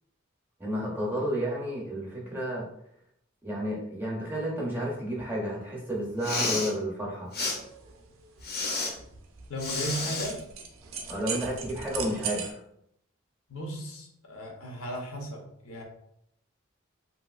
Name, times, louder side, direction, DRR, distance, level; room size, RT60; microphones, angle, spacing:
voice 1, 0.6-2.6 3.4-7.3 11.1-12.6, equal, 10° right, -4 dB, 0.6 m, -31 dB
Respiratory sounds, 6.1-6.7 7.3-7.6 8.4-8.9 9.6-10.3, left 3 dB, 45° left, 0.5 m, -30 dB
sound 1, 7.4-12.5, right 6 dB, 70° right, 0.4 m, -39 dB
voice 2, 9.5-10.4 13.5-15.8, equal, 85° left, 0 dB, 0.7 m, -36 dB
2.8 x 2.6 x 2.3 m, 0.75 s
head